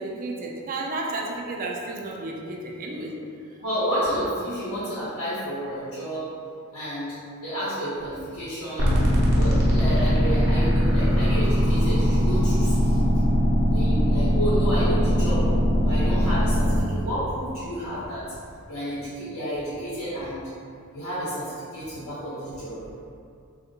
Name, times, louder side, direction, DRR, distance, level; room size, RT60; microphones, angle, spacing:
voice 1, 0.0-3.2, right 2 dB, 40° right, -1 dB, 0.3 m, -32 dB
voice 2, 3.6-6.2 6.7-7.2 7.4-8.9 9.3-13.1 13.7-15.5 15.8-18.4 18.7-20.4 20.9-22.8, equal, 80° left, -11 dB, 0.9 m, -30 dB
sound 1, 8.8-16.8, equal, 75° right, 0.7 m, -20 dB
3.4 x 2.4 x 2.7 m, 2.4 s
head